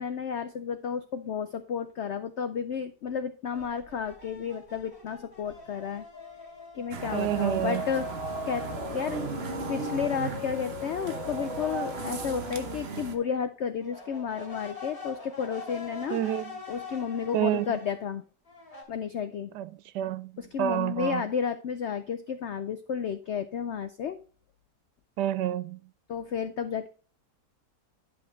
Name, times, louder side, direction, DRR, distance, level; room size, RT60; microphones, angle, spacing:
voice 1, 0.0-6.1 6.7-8.1 8.5-9.2 9.7-16.2 16.7-18.2 18.9-19.5 20.4-24.2 26.1-26.9, left 7 dB, 75° left, 0.6 m, -32 dB
sound 1, 3.5-6.9 7.3-13.3 13.8-18.0 18.5-18.8, left 3 dB, 30° left, 3.2 m, -46 dB
sound 2, 6.1-12.8, left 7 dB, 60° left, 1.4 m, -43 dB
sound 3, 6.9-13.1, right 4 dB, 45° right, 1.1 m, -35 dB
voice 2, 7.1-7.8 16.1-16.4 17.3-17.7 19.6-19.7 19.9-20.3 20.6-21.2 25.2-25.8, right 12 dB, 80° right, 1.1 m, -28 dB
11.0 x 5.7 x 3.2 m
omnidirectional pair, 1.8 m